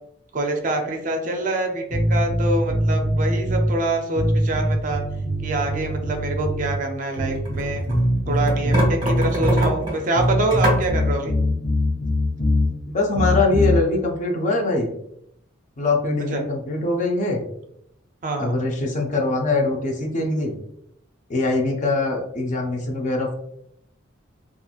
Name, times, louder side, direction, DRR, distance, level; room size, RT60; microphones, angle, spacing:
voice 1, 0.3-5.0 5.4-7.9 8.3-11.3 16.3-16.4 18.2-18.5, right 2 dB, 40° right, 3 dB, 0.4 m, -25 dB
sound 1, 1.9-3.7 4.2-6.7 7.2-9.7 10.2-12.7 13.1-13.8, equal, 75° left, 1.0 m, -22 dB
sound 2, 7.1-8.0 8.4-10.9, right 1 dB, 20° right, 0.8 m, -25 dB
voice 2, 12.9-14.9 15.8-17.4 18.4-20.6 21.3-23.3, left 2 dB, 40° left, 1 dB, 0.4 m, -22 dB
2.9 x 2.4 x 2.3 m, 0.76 s
head